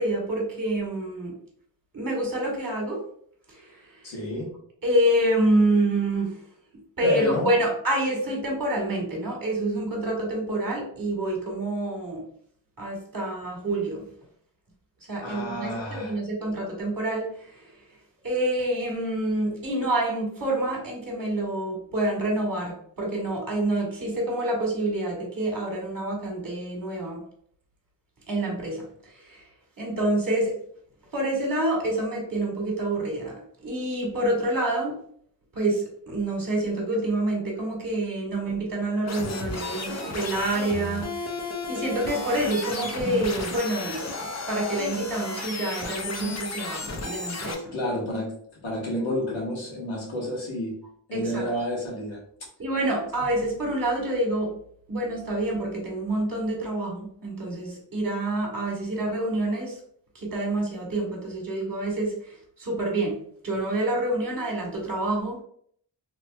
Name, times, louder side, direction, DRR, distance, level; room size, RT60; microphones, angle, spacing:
voice 1, 0.0-1.4 1.9-3.0 3.5-4.1 4.8-6.4 7.0-12.2 12.8-14.0 15.0-17.8 18.2-27.2 28.3-29.5 29.8-30.6 31.1-34.9 35.5-47.8 51.1-51.5 52.6-54.5 54.9-59.8 60.1-65.4, right 1 dB, 45° right, -1 dB, 1.4 m, -27 dB
voice 2, 4.0-4.5 7.0-7.5 15.2-16.2 47.7-48.3 48.6-50.7 51.1-52.2, left 1 dB, 85° left, -4 dB, 1.3 m, -29 dB
sound 1, 39.1-47.5, left 3 dB, 35° left, 0.6 m, -33 dB
2.9 x 2.8 x 2.2 m, 0.62 s
cardioid pair, 55°, 45 cm